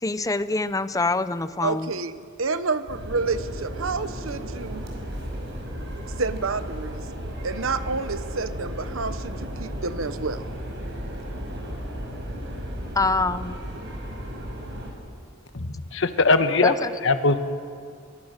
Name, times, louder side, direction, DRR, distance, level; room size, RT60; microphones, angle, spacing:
voice 1, 0.0-1.9 12.9-13.6 16.6-16.9, left 3 dB, 15° left, 13 dB, 0.7 m, -25 dB
voice 2, 1.6-4.8 6.2-7.0 7.4-10.5, right 4 dB, 85° right, 12 dB, 1.0 m, -29 dB
sound 1, 2.9-14.9, equal, 65° right, 5.5 m, -34 dB
voice 3, 15.5-16.7 17.0-17.4, left 3 dB, 70° left, 8 dB, 1.4 m, -21 dB
23.0 x 23.0 x 6.6 m, 2.2 s
head